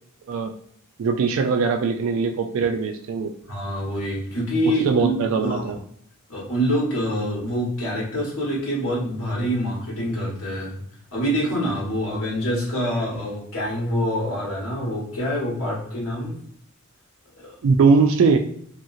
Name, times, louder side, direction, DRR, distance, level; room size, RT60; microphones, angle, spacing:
voice 1, 1.0-3.3 4.8-5.8 17.6-18.4, right 4 dB, 65° right, 5 dB, 0.3 m, -20 dB
voice 2, 3.5-5.1 5.4-5.7 6.3-10.8 11.1-16.3 17.4-17.5, equal, 65° left, -4 dB, 1.5 m, -26 dB
2.9 x 2.7 x 2.5 m, 0.66 s
head